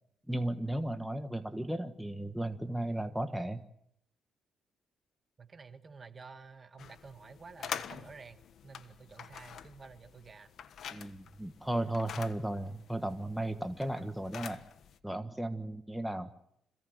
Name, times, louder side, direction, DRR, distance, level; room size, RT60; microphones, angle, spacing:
voice 1, 0.3-3.6 10.9-14.6 15.0-16.3, right 1 dB, 5° right, 7 dB, 1.4 m, -35 dB
voice 2, 5.4-10.5, right 4 dB, 35° right, 8 dB, 1.8 m, -51 dB
sound 1, 6.8-15.0, left 8 dB, 65° left, 1.4 m, -46 dB
27.0 x 17.0 x 7.9 m, 0.76 s
cardioid pair, 90°, 0 cm